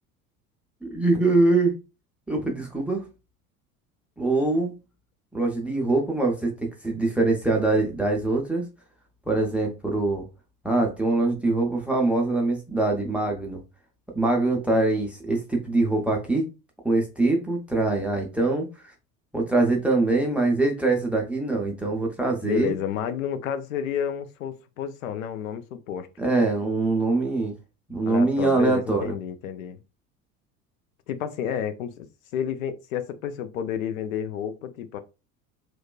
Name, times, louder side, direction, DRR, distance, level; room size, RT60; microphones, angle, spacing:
voice 1, 0.8-1.7 2.3-3.0 4.2-4.8 5.3-8.7 9.3-10.2 10.6-13.6 14.1-16.5 16.8-18.7 19.3-22.7 26.2-27.5 27.9-29.2, right 2 dB, 5° right, 0.4 m, -23 dB
voice 2, 22.4-26.1 28.1-29.8 31.1-32.1 32.3-35.0, left 8 dB, 65° left, 0.5 m, -30 dB
3.0 x 2.1 x 2.2 m
figure-of-eight pair, 65°, 43 cm